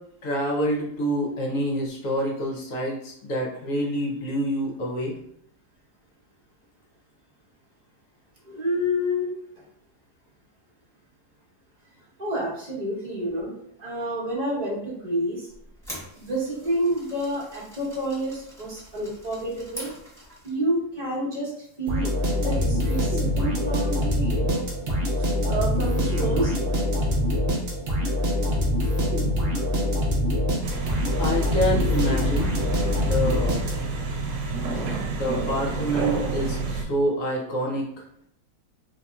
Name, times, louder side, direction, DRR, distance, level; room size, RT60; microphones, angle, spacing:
voice 1, 0.2-5.1 31.2-32.5 33.0-33.6 35.2-37.9, equal, 60° left, -1 dB, 1.0 m, -27 dB
voice 2, 8.5-9.3 12.2-13.5 13.8-15.5 16.1-19.9 20.4-21.5 21.8-24.6 25.4-26.6 34.6-35.0, equal, 30° right, -5 dB, 0.9 m, -29 dB
sound 1, 15.5-20.6, equal, 5° left, 0.6 m, -44 dB
sound 2, 21.9-34.1, left 1 dB, 50° right, 0.8 m, -24 dB
sound 3, 30.6-36.8, right 3 dB, 75° right, 1.1 m, -29 dB
4.0 x 2.8 x 2.3 m, 0.70 s
omnidirectional pair, 1.8 m